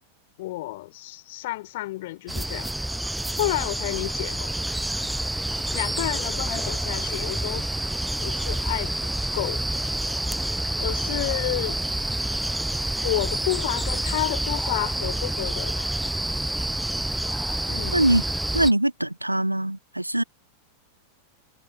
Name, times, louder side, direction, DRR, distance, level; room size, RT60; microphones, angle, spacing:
voice 1, 0.4-2.7 3.4-4.5 5.7-7.7 8.2-9.6 10.8-11.8 13.0-15.9 17.7-18.0, left 18 dB, 50° left, 3.0 m, -30 dB
sound 1, 2.3-18.7, right 1 dB, 5° right, 0.7 m, -28 dB
voice 2, 17.9-18.2 18.5-20.2, right 1 dB, 85° right, 0.4 m, -22 dB
figure-of-eight pair, 90°, 0 cm